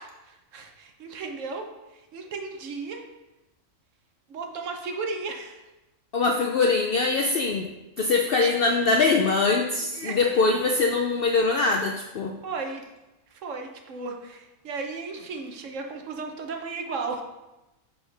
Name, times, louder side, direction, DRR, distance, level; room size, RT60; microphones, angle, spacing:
voice 1, 0.0-3.0 4.3-5.6 8.4-8.6 9.8-10.2 12.4-12.8 13.3-17.2, right 4 dB, 65° right, 3 dB, 1.1 m, -35 dB
voice 2, 6.1-7.7 8.0-12.3, left 3 dB, 65° left, 2 dB, 0.5 m, -23 dB
6.0 x 5.5 x 3.3 m, 0.99 s
omnidirectional pair, 1.4 m